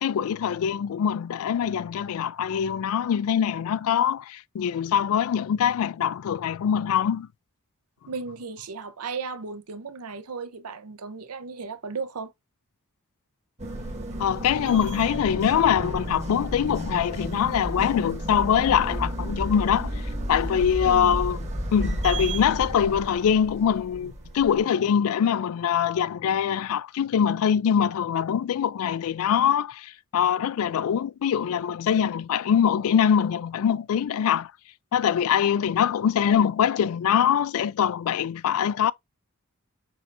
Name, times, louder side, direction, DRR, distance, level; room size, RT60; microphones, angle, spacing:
voice 1, 0.0-7.3 14.2-19.9 20.3-21.4 21.7-34.5 34.9-38.9, left 8 dB, 65° left, 0.3 m, -23 dB
voice 2, 8.1-12.3 20.8-21.2, right 4 dB, 80° right, 0.7 m, -35 dB
sound 1, 13.6-24.6, equal, 30° right, 1.1 m, -32 dB
6.2 x 3.3 x 2.6 m
head